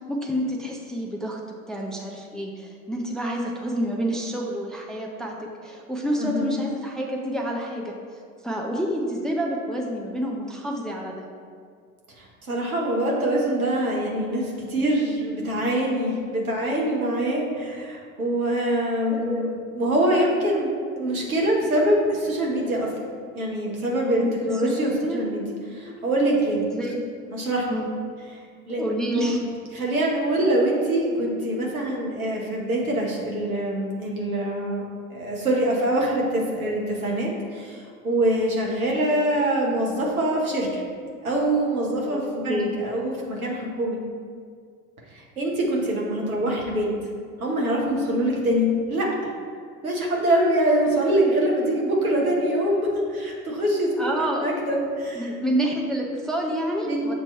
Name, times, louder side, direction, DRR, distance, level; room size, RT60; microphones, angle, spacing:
voice 1, 0.1-1.4 1.7-7.9 8.4-11.2 19.1-19.4 24.2-24.3 25.0-25.2 26.7-27.0 27.7-27.9 28.8-29.4 42.1-42.2 42.5-42.7 54.0-54.5 55.2-57.1, equal, ahead, 0 dB, 0.5 m, -28 dB
voice 2, 6.2-6.6 12.2-22.9 23.3-25.4 25.7-26.6 27.3-27.7 28.7-28.8 29.1-29.5 29.7-34.8 35.1-40.8 41.2-44.0 45.1-46.9 47.4-49.1 49.8-55.3 56.8-57.1, right 1 dB, 80° right, -3 dB, 1.4 m, -24 dB
7.2 x 2.9 x 5.5 m, 2.1 s
figure-of-eight pair, 70°, 43 cm